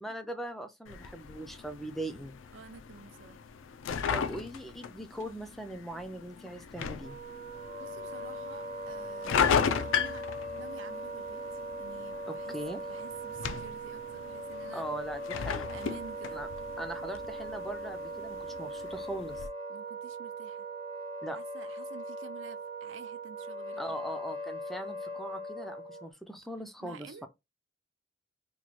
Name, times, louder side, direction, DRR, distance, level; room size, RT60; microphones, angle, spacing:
voice 1, 0.0-2.4 4.1-7.2 9.3-9.4 12.3-12.8 14.7-15.8 16.3-16.5 16.8-19.5 21.2-21.4 23.8-27.3, right 1 dB, ahead, 0.3 m, -40 dB
sound 1, 0.9-19.5, left 7 dB, 80° left, 0.4 m, -36 dB
voice 2, 2.5-3.4 4.2-4.4 7.8-10.2 10.5-11.4 11.8-12.6 12.9-14.9 15.7-16.4 19.7-20.7 21.3-24.0 26.8-27.3, right 5 dB, 75° right, 0.5 m, -50 dB
Wind instrument woodwind instrument, 7.0-26.1, right 1 dB, 25° right, 0.7 m, -40 dB
3.0 x 2.2 x 4.1 m
head